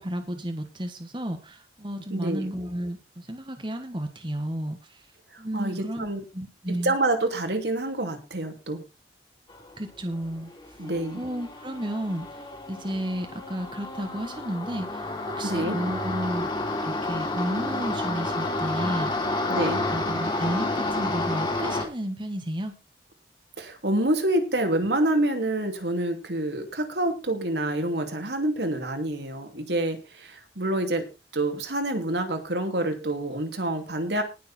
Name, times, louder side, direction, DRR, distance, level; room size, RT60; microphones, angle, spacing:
voice 1, 0.0-5.1 5.4-6.9 9.8-10.9 11.2-16.5 16.8-22.8, equal, 25° right, 6 dB, 1.5 m, -32 dB
voice 2, 2.1-2.5 5.3-6.2 6.8-8.8 10.8-11.2 15.4-15.8 19.5-19.8 23.6-31.1 31.3-34.2, right 1 dB, 75° right, 5 dB, 2.8 m, -27 dB
sound 1, 9.5-9.8 10.1-21.8, left 2 dB, 25° left, 3.5 m, -30 dB
19.5 x 6.8 x 4.3 m, 0.29 s
head